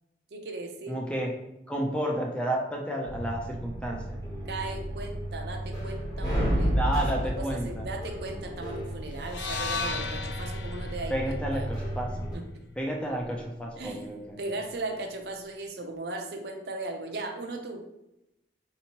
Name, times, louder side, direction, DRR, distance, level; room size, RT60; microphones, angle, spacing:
voice 1, 0.3-1.0 4.5-6.7 7.1-11.7 12.3-12.4 13.8-14.1 14.4-17.8, right 2 dB, 65° right, 3 dB, 0.5 m, -37 dB
voice 2, 0.9-1.3 1.7-4.2 6.7-7.9 11.1-12.3 12.8-14.4, right 1 dB, 5° left, 0 dB, 0.4 m, -31 dB
sound 1, 3.1-12.3, equal, 20° left, 0.9 m, -32 dB
sound 2, 9.2-13.4, left 4 dB, 85° left, 0.4 m, -37 dB
4.3 x 2.9 x 2.9 m, 0.88 s
head